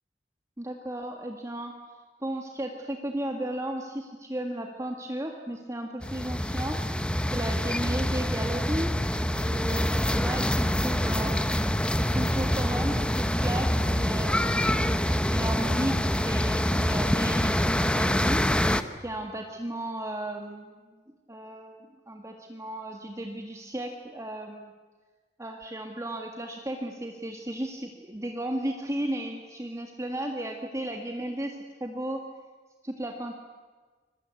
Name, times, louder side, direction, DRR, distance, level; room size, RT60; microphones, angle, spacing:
voice 1, 0.6-1.7 2.2-6.8 7.3-8.9 9.3-11.5 12.1-18.4 19.0-20.8 21.3-24.7 25.4-32.2 32.8-33.4, right 1 dB, 15° right, 3 dB, 1.8 m, -34 dB
sound 1, 6.0-18.8, equal, 5° left, 1.0 m, -26 dB
26.5 x 22.5 x 8.4 m, 1.4 s
head